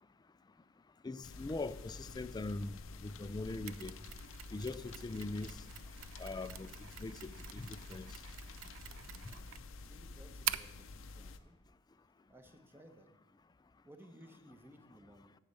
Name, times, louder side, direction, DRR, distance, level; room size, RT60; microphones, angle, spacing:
voice 1, 1.0-2.7 3.0-4.0 4.5-5.5 6.2-6.7 7.0-8.1 9.3-9.4, left 2 dB, 20° left, 0.3 m, -41 dB
sound 1, 1.2-11.4, left 3 dB, 70° left, 0.6 m, -50 dB
Mechanisms, 3.7-10.8, right 13 dB, 70° right, 0.4 m, -45 dB
voice 2, 9.8-11.6 12.3-13.1 13.8-15.4, equal, 10° right, 1.0 m, -59 dB
8.6 x 6.5 x 8.1 m
head